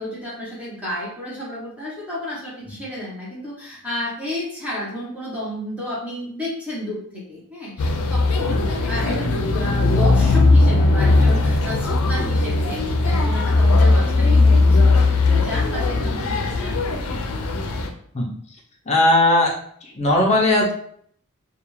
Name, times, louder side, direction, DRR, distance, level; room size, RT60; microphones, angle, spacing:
voice 1, 0.0-17.2, left 1 dB, 5° right, -8 dB, 0.8 m, -31 dB
sound 1, 7.8-17.9, left 3 dB, 75° left, 0.4 m, -18 dB
voice 2, 18.9-19.5 19.8-20.7, left 1 dB, 30° left, -2 dB, 0.5 m, -18 dB
2.3 x 2.3 x 3.0 m, 0.63 s
head